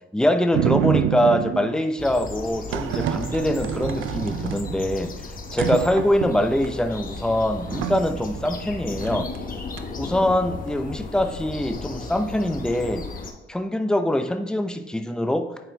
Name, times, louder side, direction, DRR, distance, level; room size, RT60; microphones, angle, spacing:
voice 1, 0.1-5.1 5.5-9.3 10.0-13.1 13.5-15.6, left 1 dB, 5° left, 7 dB, 0.7 m, -23 dB
sound 1, 0.5-1.8 2.7-5.1 5.4-6.7 7.1-7.2 7.6-8.6 9.0-9.4 9.8-10.3, right 10 dB, 85° right, 0.5 m, -27 dB
sound 2, 2.0-13.3, left 4 dB, 45° left, 1.1 m, -35 dB
9.3 x 4.4 x 3.4 m, 1.2 s
cardioid pair, 90°, 20 cm